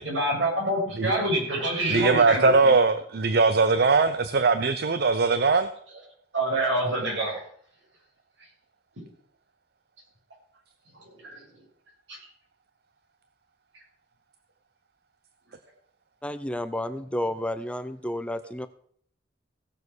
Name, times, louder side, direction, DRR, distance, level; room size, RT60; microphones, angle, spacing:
voice 1, 0.0-2.7 6.3-7.4 11.0-11.4 12.1-12.2, right 1 dB, 80° right, -2 dB, 6.6 m, -27 dB
voice 2, 1.9-5.7, right 4 dB, 60° right, 11 dB, 0.7 m, -21 dB
voice 3, 16.2-18.7, left 1 dB, 5° left, 12 dB, 0.6 m, -31 dB
16.5 x 7.2 x 6.3 m, 0.62 s
head